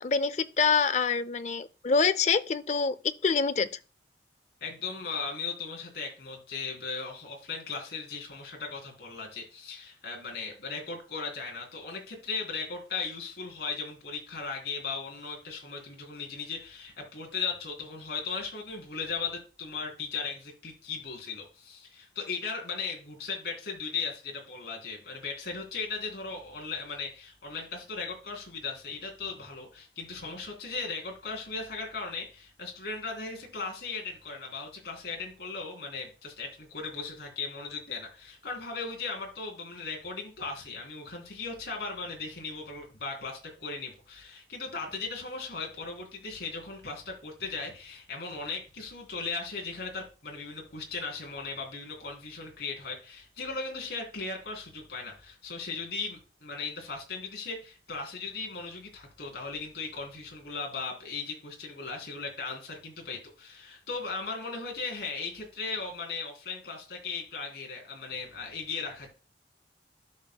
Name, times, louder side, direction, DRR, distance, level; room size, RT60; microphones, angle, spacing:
voice 1, 0.0-3.7, left 5 dB, 40° left, 0.4 m, -26 dB
voice 2, 4.6-69.1, left 4 dB, 65° left, 3.1 m, -37 dB
13.0 x 5.6 x 2.2 m
head